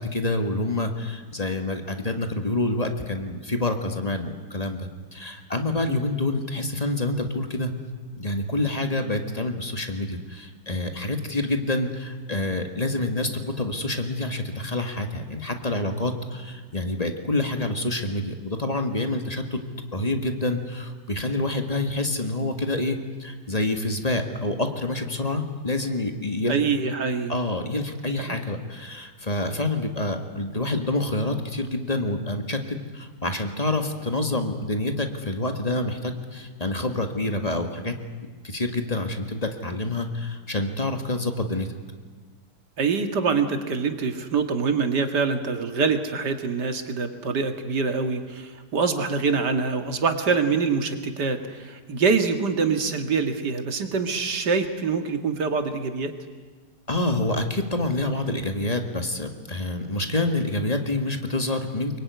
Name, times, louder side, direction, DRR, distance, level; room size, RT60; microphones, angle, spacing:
voice 1, 0.0-7.7 8.2-19.6 19.9-26.6 27.3-37.9 38.4-41.7 56.9-62.0, left 2 dB, 25° left, 6 dB, 1.8 m, -27 dB
voice 2, 26.5-27.3 28.2-28.4 42.8-56.1, right 5 dB, 85° right, 7 dB, 2.5 m, -25 dB
24.0 x 22.5 x 9.5 m, 1.4 s
omnidirectional pair, 1.8 m